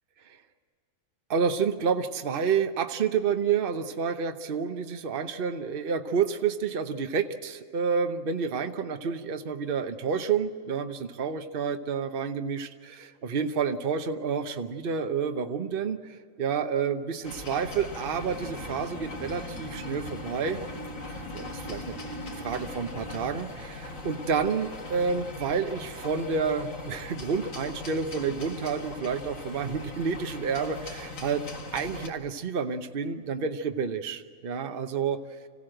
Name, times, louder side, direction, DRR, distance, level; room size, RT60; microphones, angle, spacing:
voice 1, 1.3-20.6 21.3-22.0 22.4-31.5 31.7-35.2, right 6 dB, 45° right, 7 dB, 1.0 m, -29 dB
sound 1, 17.2-32.1, left 2 dB, 80° left, 2.3 m, -40 dB
sound 2, 18.2-23.4, left 1 dB, 35° left, 6.9 m, -42 dB
26.0 x 16.0 x 7.8 m, 2.2 s
omnidirectional pair, 1.4 m